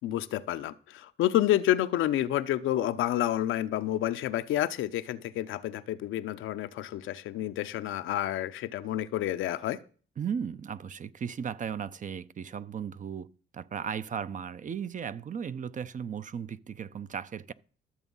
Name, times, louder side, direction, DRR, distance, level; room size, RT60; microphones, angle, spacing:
voice 1, 0.0-9.8, left 13 dB, 80° left, 0.7 m, -29 dB
voice 2, 10.2-13.3 13.5-17.5, right 7 dB, 40° right, 0.6 m, -36 dB
13.0 x 7.0 x 5.4 m
cardioid pair, 90°, 20 cm